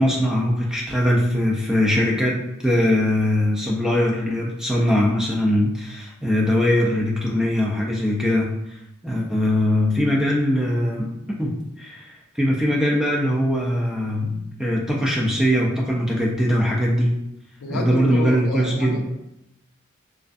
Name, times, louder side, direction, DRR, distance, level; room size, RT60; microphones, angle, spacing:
voice 1, 0.0-2.4 2.6-8.6 9.0-11.1 11.4-17.1 17.7-19.1, equal, 5° right, -3 dB, 0.3 m, -21 dB
voice 2, 17.6-19.1, left 2 dB, 90° left, 3 dB, 0.4 m, -30 dB
2.5 x 2.3 x 2.4 m, 0.84 s
head